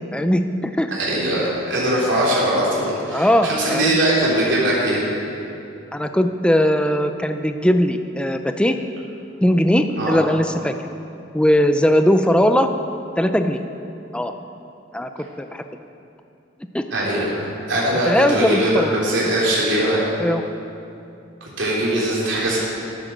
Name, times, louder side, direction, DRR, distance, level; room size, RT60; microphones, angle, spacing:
voice 1, 0.1-0.9 3.1-4.0 5.9-8.8 9.4-10.7 11.3-12.7 13.2-13.6 14.1-14.3 14.9-15.1 15.4-15.6 16.7-16.8 18.1-18.9 20.2-20.4, equal, 5° left, 7 dB, 0.5 m, -19 dB
voice 2, 0.9-5.0 10.0-10.2 16.9-20.0 21.4-22.6, right 1 dB, 70° right, -6 dB, 3.7 m, -21 dB
11.0 x 10.0 x 6.6 m, 2.7 s
head